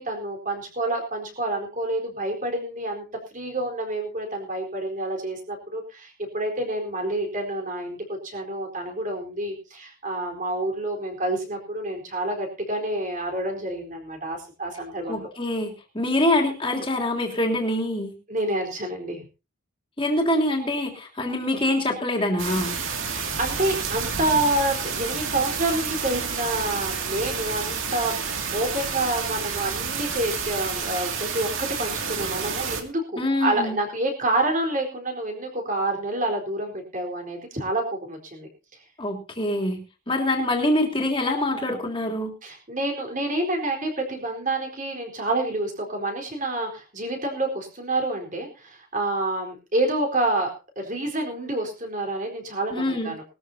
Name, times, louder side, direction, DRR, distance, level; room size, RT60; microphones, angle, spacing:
voice 1, 0.0-3.0 3.3-15.3 18.3-19.2 23.4-38.5 42.4-53.2, right 1 dB, 40° right, 3 dB, 4.2 m, -28 dB
voice 2, 15.1-18.1 20.0-22.8 33.2-33.8 39.0-42.3 52.7-53.1, left 1 dB, 25° left, 0 dB, 3.2 m, -25 dB
sound 1, 22.4-32.8, right 6 dB, 75° right, 2.4 m, -30 dB
21.0 x 13.5 x 2.8 m, 0.31 s
head